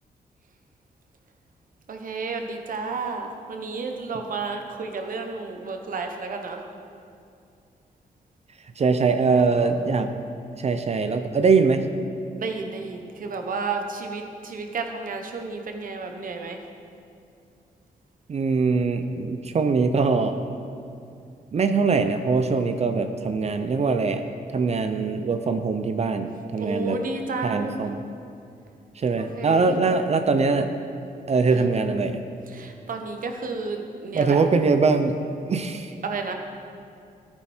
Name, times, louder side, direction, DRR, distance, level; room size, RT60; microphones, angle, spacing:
voice 1, 1.9-6.6 9.3-9.7 12.4-16.6 26.6-27.8 29.2-29.8 31.5-31.7 32.5-34.4 36.0-36.3, right 4 dB, 60° right, 4 dB, 1.2 m, -32 dB
voice 2, 8.8-10.1 10.6-11.8 18.3-20.4 21.5-24.2 24.5-27.0 27.4-28.0 29.0-30.7 31.3-32.2 34.1-35.2 35.5-35.9, right 4 dB, 45° right, 8 dB, 0.6 m, -22 dB
14.5 x 9.1 x 4.4 m, 2.5 s
wide cardioid pair, 120°, 16 cm